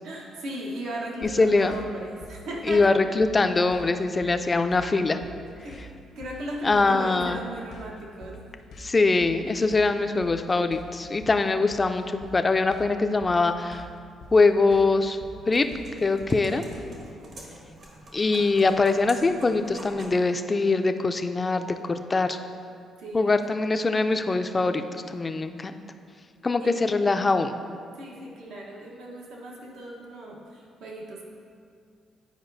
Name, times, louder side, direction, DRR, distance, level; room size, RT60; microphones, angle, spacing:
voice 1, 0.0-2.9 5.6-8.4 16.3-16.9 23.0-23.3 26.6-26.7 27.9-31.2, right 1 dB, 85° right, -2 dB, 1.1 m, -37 dB
sound 1, 1.2-17.1, equal, 70° left, 0.8 m, -46 dB
voice 2, 1.4-1.8 2.7-5.2 6.6-7.4 8.8-13.9 14.3-15.2 15.5-15.7 16.0-16.6 18.1-22.4 23.1-25.8 26.4-27.5, left 3 dB, 25° left, 8 dB, 0.4 m, -23 dB
sound 2, 15.3-20.2, right 1 dB, 60° right, 1.3 m, -46 dB
9.7 x 4.8 x 2.6 m, 2.3 s
cardioid pair, 90°, 0 cm